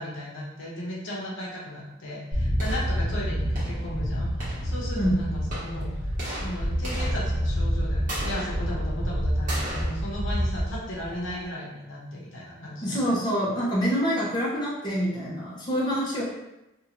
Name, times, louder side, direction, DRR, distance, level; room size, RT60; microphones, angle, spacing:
voice 1, 0.0-5.9 6.4-13.2, equal, 70° left, -5 dB, 0.8 m, -36 dB
sound 1, 2.3-11.5, equal, 45° right, 1.0 m, -28 dB
voice 2, 12.8-16.2, equal, 20° left, -8 dB, 0.7 m, -26 dB
2.7 x 2.4 x 2.9 m, 0.93 s
head